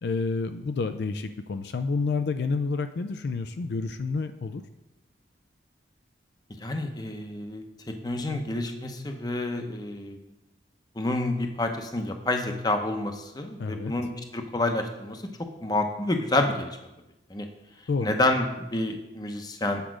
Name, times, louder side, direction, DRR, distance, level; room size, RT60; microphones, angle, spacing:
voice 1, 0.0-4.6 13.6-13.9 17.9-18.1, left 4 dB, 65° left, 9 dB, 0.4 m, -29 dB
voice 2, 6.6-7.6 8.0-10.2 10.9-15.2 15.6-16.8 17.3-17.5 18.0-19.8, left 2 dB, 20° left, 5 dB, 0.7 m, -28 dB
8.2 x 5.0 x 6.1 m, 0.98 s
head